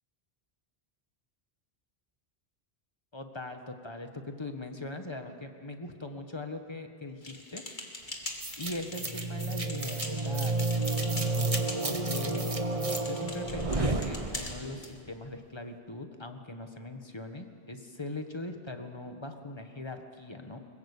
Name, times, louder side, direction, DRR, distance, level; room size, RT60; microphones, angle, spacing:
voice 1, 3.1-7.6 8.6-10.6 11.1-11.5 11.8-12.4 13.1-20.6, left 2 dB, 25° left, 6 dB, 1.6 m, -40 dB
sound 1, 7.2-14.9, left 2 dB, 50° left, 2.4 m, -42 dB
sound 2, 8.4-14.8, right 2 dB, 35° right, 1.5 m, -31 dB
22.0 x 21.0 x 8.5 m, 2.3 s
omnidirectional pair, 1.1 m